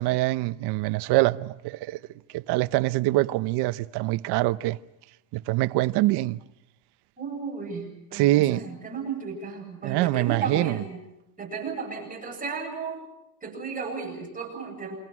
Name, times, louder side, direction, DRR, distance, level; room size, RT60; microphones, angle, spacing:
voice 1, 0.0-2.0 2.3-4.8 5.3-6.4 8.1-8.6 9.8-10.8, right 18 dB, 70° right, 0.9 m, -24 dB
voice 2, 7.2-11.0 11.4-13.0 13.4-15.0, right 5 dB, 20° right, 7.9 m, -34 dB
28.0 x 26.0 x 6.1 m
cardioid pair, 145°, 41 cm